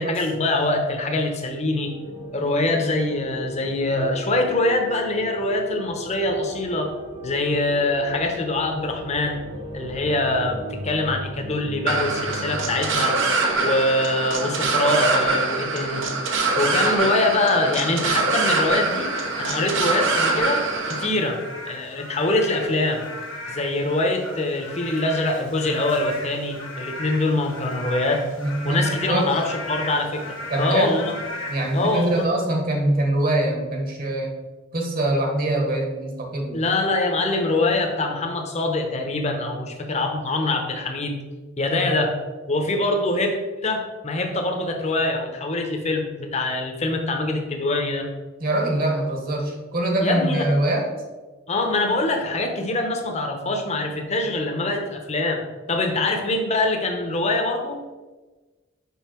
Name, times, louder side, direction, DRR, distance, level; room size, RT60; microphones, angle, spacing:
voice 1, 0.0-1.9 2.3-6.9 7.2-9.4 9.7-13.2 13.6-16.0 16.6-19.1 19.4-21.4 21.7-23.0 23.5-28.2 28.6-31.0 31.7-32.3 36.5-41.2 41.6-42.2 42.5-48.1 50.0-50.5 51.5-55.4 55.7-57.8, left 2 dB, 35° left, 3 dB, 0.9 m, -24 dB
sound 1, 1.8-12.8, equal, 30° right, 0.9 m, -37 dB
sound 2, 11.9-21.1, right 3 dB, 75° right, 1.0 m, -24 dB
Frog / Rain, 18.8-32.2, left 2 dB, 90° left, 1.6 m, -37 dB
voice 2, 28.4-29.4 30.5-31.0 31.5-34.3 34.7-36.6 48.4-50.9, right 1 dB, 50° right, 1 dB, 1.5 m, -23 dB
5.5 x 5.4 x 4.4 m, 1.2 s
head